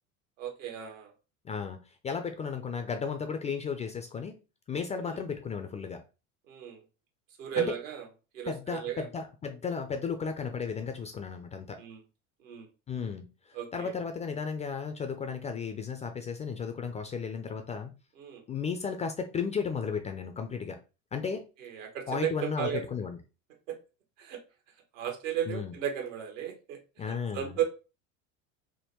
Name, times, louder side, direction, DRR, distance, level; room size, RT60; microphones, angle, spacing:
voice 1, 0.4-1.1 5.1-5.2 6.5-6.8 7.4-8.0 8.3-9.1 11.8-12.0 12.4-12.7 13.5-13.9 18.2-18.4 21.6-22.8 23.7-23.8 24.2-24.4 24.9-26.8 27.1-27.6, right 10 dB, 70° right, 5 dB, 1.0 m, -34 dB
voice 2, 1.4-4.4 4.7-6.0 7.6-7.7 8.5-11.8 12.9-17.9 18.5-20.8 21.1-21.5 22.1-23.2 25.5-25.7 27.0-27.6, left 6 dB, 20° left, 6 dB, 0.3 m, -34 dB
3.6 x 2.1 x 2.9 m, 0.31 s
hypercardioid pair, 75°, 40 cm